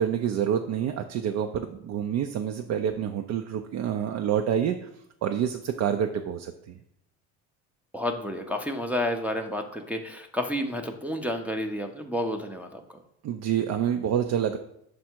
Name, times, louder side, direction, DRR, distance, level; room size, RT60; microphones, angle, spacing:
voice 1, 0.0-4.8 5.2-6.7 13.2-14.6, right 9 dB, 55° right, 5 dB, 0.5 m, -27 dB
voice 2, 7.9-13.0, left 1 dB, 5° right, 3 dB, 0.6 m, -30 dB
6.3 x 3.5 x 4.4 m, 0.77 s
supercardioid pair, 90°, 33 cm